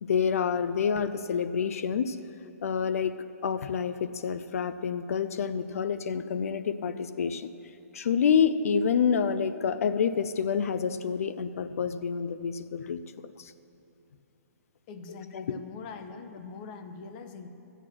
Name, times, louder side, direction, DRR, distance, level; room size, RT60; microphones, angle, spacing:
voice 1, 0.0-2.2 2.6-3.1 3.4-7.5 7.9-13.0 13.4-13.5 15.3-15.6, left 6 dB, 65° left, 12 dB, 0.5 m, -28 dB
voice 2, 14.9-17.5, left 5 dB, 30° left, 8 dB, 0.8 m, -42 dB
12.0 x 7.9 x 6.1 m, 2.8 s
hypercardioid pair, 150°, 9 cm